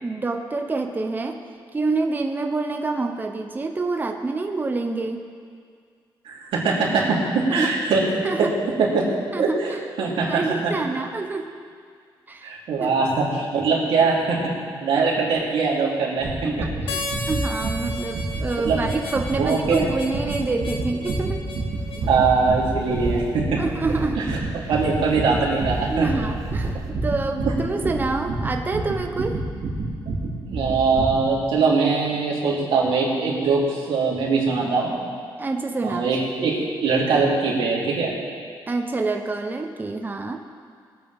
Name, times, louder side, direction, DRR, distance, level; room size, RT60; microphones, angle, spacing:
voice 1, 0.0-1.4 1.7-5.2 7.5-7.7 8.2-8.5 9.3-9.6 10.3-11.5 12.3-12.5 12.8-12.9 16.4-21.4 23.6-24.3 25.9-29.4 35.4-36.0 38.7-40.4, right 3 dB, 20° right, 4 dB, 0.8 m, -27 dB
voice 2, 6.2-8.0 8.8-9.0 9.4-10.7 12.4-14.4 14.8-16.3 18.6-18.8 19.4-19.8 22.1-23.6 24.2-24.4 24.7-26.1 30.4-35.0 35.8-38.1, right 4 dB, 85° right, -5 dB, 3.3 m, -22 dB
sound 1, 16.2-31.3, right 2 dB, 70° right, 2.7 m, -29 dB
Harmonica, 16.9-22.1, left 1 dB, 75° left, 1.5 m, -34 dB
sound 2, 21.7-23.4 23.7-24.1 24.6-26.9, right 2 dB, 35° right, 1.7 m, -35 dB
21.5 x 8.4 x 3.6 m, 2.1 s
cardioid pair, 115°, 9 cm